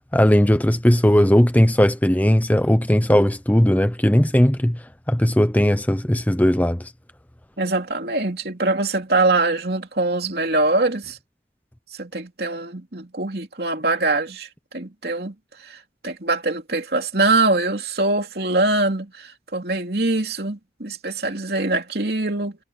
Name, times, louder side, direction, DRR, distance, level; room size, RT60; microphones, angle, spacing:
voice 1, 0.1-6.9, equal, 10° left, 0.8 m, -18 dB
voice 2, 7.6-11.2 12.0-14.5 14.7-15.3 15.6-15.8 16.0-22.6, right 2 dB, 60° right, 3.2 m, -23 dB
head